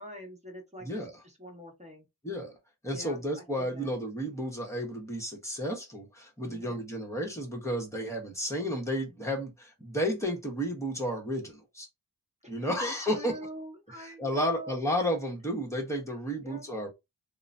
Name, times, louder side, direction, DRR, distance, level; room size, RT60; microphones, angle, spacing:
voice 1, 0.0-2.1 2.9-3.9 6.4-6.8 12.4-14.8 16.4-16.6, equal, 15° right, 1.3 m, -44 dB
voice 2, 0.8-1.2 2.2-2.6 2.8-11.9 12.5-13.3 13.9-16.9, equal, 5° left, 1.1 m, -32 dB
2.9 x 2.2 x 2.5 m
wide cardioid pair, 60°, 42 cm